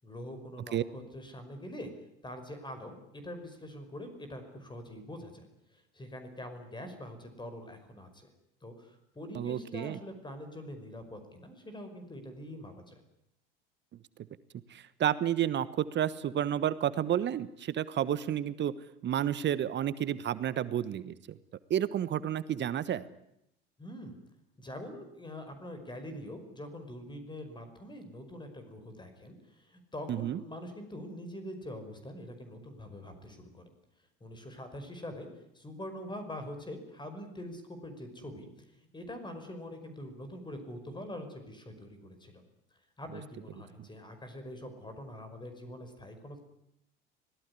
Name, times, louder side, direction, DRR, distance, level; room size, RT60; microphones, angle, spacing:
voice 1, 0.0-1.9 2.2-5.5 5.7-8.3 8.6-13.0 23.8-24.2 24.6-33.7 34.2-38.5 38.8-42.4 43.0-46.4, left 1 dB, 15° left, 8 dB, 5.5 m, -44 dB
voice 2, 9.3-10.0 14.7-18.7 19.0-21.4 21.7-23.0 30.1-30.4, right 10 dB, 40° right, 15 dB, 1.3 m, -31 dB
25.0 x 18.5 x 9.9 m, 0.80 s
hypercardioid pair, 75°, 29 cm